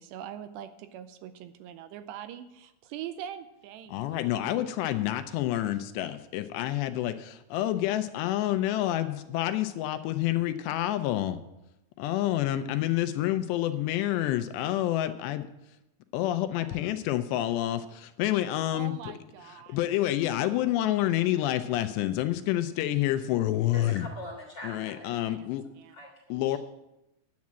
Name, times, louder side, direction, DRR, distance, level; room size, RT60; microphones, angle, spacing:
voice 1, 0.0-4.5 16.5-16.8 18.7-19.8 25.3-25.5 25.8-26.0, right 10 dB, 85° right, 10 dB, 2.7 m, -43 dB
voice 2, 3.9-11.4 12.0-15.5 16.1-18.9 19.7-24.1 24.6-25.6 26.3-26.6, left 13 dB, 80° left, 10 dB, 2.7 m, -28 dB
voice 3, 23.7-25.1 25.9-26.1 26.5-26.6, left 1 dB, 40° left, -2 dB, 1.8 m, -42 dB
10.5 x 8.5 x 7.4 m, 0.90 s
omnidirectional pair, 5.1 m